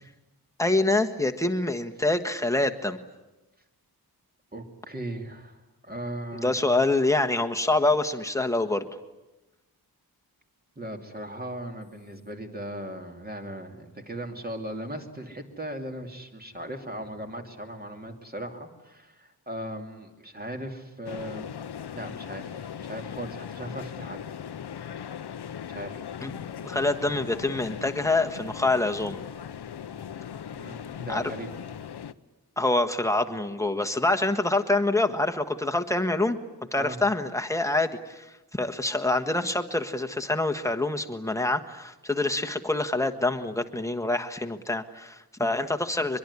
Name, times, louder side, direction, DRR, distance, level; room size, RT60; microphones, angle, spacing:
voice 1, 0.6-3.0 6.3-8.8 26.2-26.3 26.6-29.2 31.1-31.3 32.6-36.4 36.7-38.3 38.5-46.2, left 2 dB, 10° left, 5 dB, 1.5 m, -26 dB
voice 2, 4.5-5.6 5.8-6.7 10.8-21.6 21.9-24.2 25.7-26.0 26.5-26.6 30.5-31.5 36.8-37.0, right 1 dB, 25° right, 4 dB, 2.9 m, -38 dB
sound 1, 21.0-32.1, left 8 dB, 80° left, 0.9 m, -39 dB
23.5 x 23.0 x 9.8 m, 1.0 s
wide cardioid pair, 130°, 39 cm